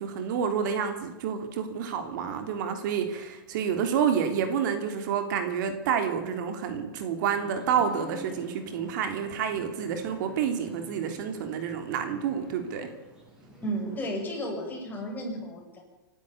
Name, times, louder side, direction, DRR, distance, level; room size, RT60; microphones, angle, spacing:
voice 1, 0.0-12.9, right 7 dB, 60° right, 7 dB, 3.3 m, -29 dB
sound 1, 7.2-14.1, equal, 5° right, 7.3 m, -48 dB
voice 2, 13.6-15.8, right 1 dB, 15° left, 0 dB, 7.0 m, -33 dB
26.0 x 12.5 x 8.5 m, 1.1 s
hypercardioid pair, 130°, 11 cm